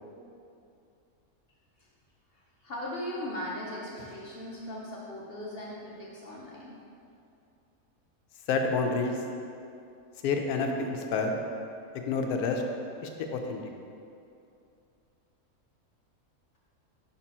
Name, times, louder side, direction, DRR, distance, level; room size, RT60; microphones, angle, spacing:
voice 1, 2.3-6.8, left 1 dB, 55° left, -4 dB, 0.7 m, -38 dB
voice 2, 8.5-9.2 10.2-11.4 12.1-12.6 13.0-13.6, left 4 dB, 80° left, 3 dB, 1.1 m, -28 dB
5.8 x 4.3 x 4.2 m, 2.6 s
omnidirectional pair, 1.6 m